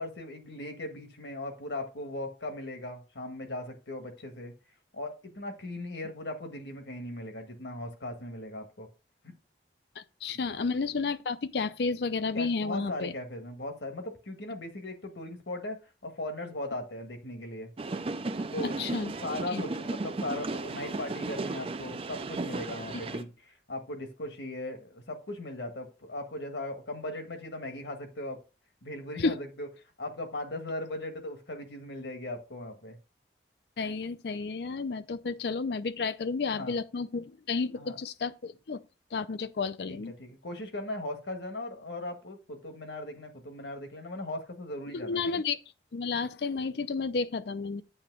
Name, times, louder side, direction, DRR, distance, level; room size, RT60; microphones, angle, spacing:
voice 1, 0.0-4.5 4.9-8.9 9.2-9.3 12.3-15.8 16.0-17.7 18.5-18.8 19.2-28.4 28.8-29.7 30.0-33.0 36.5-36.8 37.7-38.0 39.9-45.4, left 1 dB, 80° left, 1.6 m, -38 dB
voice 2, 10.0-13.1 18.8-19.2 19.5-19.6 29.2-29.3 33.8-38.8 39.1-40.1 44.9-45.6 45.9-47.8, left 4 dB, 65° left, 0.5 m, -31 dB
sound 1, 17.8-23.2, right 3 dB, 30° right, 0.4 m, -35 dB
8.6 x 3.0 x 6.0 m
head